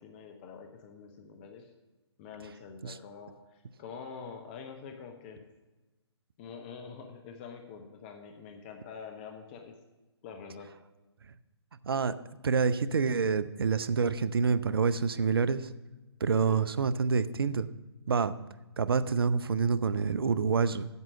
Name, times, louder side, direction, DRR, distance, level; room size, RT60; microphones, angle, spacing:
voice 1, 0.0-1.7 2.2-5.4 6.4-9.8 10.2-10.7 16.5-16.6, left 6 dB, 25° left, 4 dB, 0.7 m, -46 dB
voice 2, 11.8-12.2 12.4-15.7 16.2-17.7 18.1-18.4 18.8-20.9, right 5 dB, 55° right, 15 dB, 0.5 m, -27 dB
8.2 x 7.4 x 6.8 m, 1.1 s
figure-of-eight pair, 135°, 14 cm